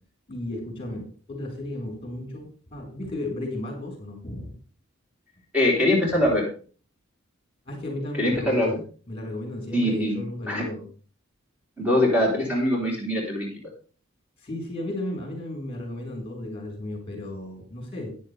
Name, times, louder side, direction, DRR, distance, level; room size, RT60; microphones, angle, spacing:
voice 1, 0.3-4.5 7.6-8.7 9.1-10.9 14.4-18.1, left 1 dB, 25° left, 1 dB, 4.5 m, -34 dB
voice 2, 5.5-6.5 8.2-8.8 9.7-10.6 11.8-13.5, left 1 dB, 5° right, -4 dB, 3.5 m, -23 dB
13.5 x 10.5 x 3.5 m, 0.39 s
head